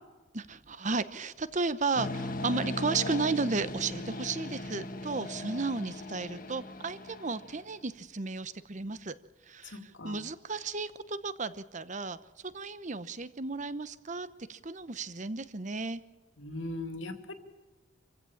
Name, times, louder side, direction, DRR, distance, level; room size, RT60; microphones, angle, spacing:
voice 1, 0.3-9.1 9.5-12.2 12.4-16.0, right 4 dB, 40° right, 14 dB, 0.9 m, -34 dB
sound 1, 2.0-7.7, left 1 dB, 45° left, 1.7 m, -38 dB
voice 2, 9.6-10.2 16.4-17.3, left 2 dB, 75° left, 6 dB, 2.5 m, -39 dB
26.5 x 16.0 x 7.2 m, 1.3 s
head